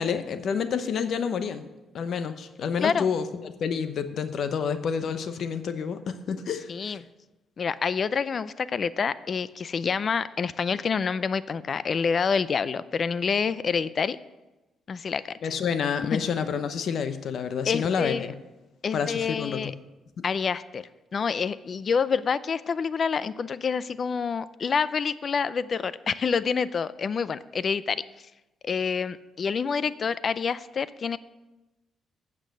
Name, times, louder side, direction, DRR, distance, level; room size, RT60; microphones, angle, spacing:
voice 1, 0.0-1.7 1.9-7.0 15.4-18.3 18.9-19.7 20.2-20.3, left 6 dB, 65° left, 10 dB, 0.8 m, -29 dB
voice 2, 6.7-7.0 7.6-14.2 14.9-15.4 17.7-18.3 18.8-19.7 20.2-20.8 21.1-28.0 28.6-31.2, left 6 dB, 45° left, 17 dB, 0.4 m, -27 dB
8.9 x 7.5 x 6.6 m, 1.1 s
cardioid pair, 90°, 0 cm